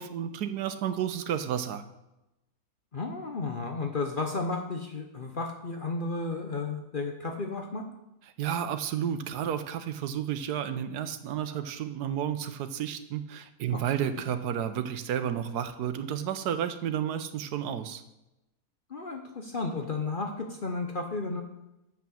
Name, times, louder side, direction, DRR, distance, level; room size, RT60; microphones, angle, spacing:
voice 1, 0.0-1.8 8.4-18.0, right 9 dB, 80° right, 10 dB, 1.2 m, -31 dB
voice 2, 2.9-7.8 13.7-14.2 18.9-21.4, left 3 dB, 45° left, 3 dB, 0.8 m, -33 dB
7.5 x 5.9 x 7.0 m, 0.94 s
omnidirectional pair, 1.7 m